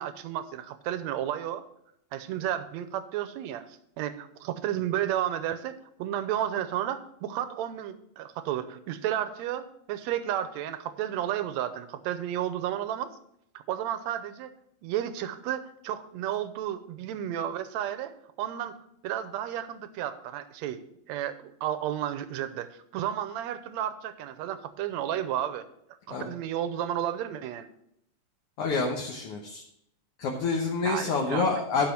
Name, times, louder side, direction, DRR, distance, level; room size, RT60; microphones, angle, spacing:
voice 1, 0.0-1.6 2.1-3.7 4.0-5.7 6.0-13.1 13.7-14.5 14.8-18.7 19.0-20.8 21.1-22.7 22.9-25.6 26.1-27.7 30.8-31.5, right 11 dB, 75° right, 11 dB, 1.8 m, -32 dB
voice 2, 28.6-29.6 30.2-31.9, left 4 dB, 60° left, 1 dB, 1.7 m, -28 dB
12.0 x 5.7 x 5.9 m, 0.74 s
omnidirectional pair, 3.7 m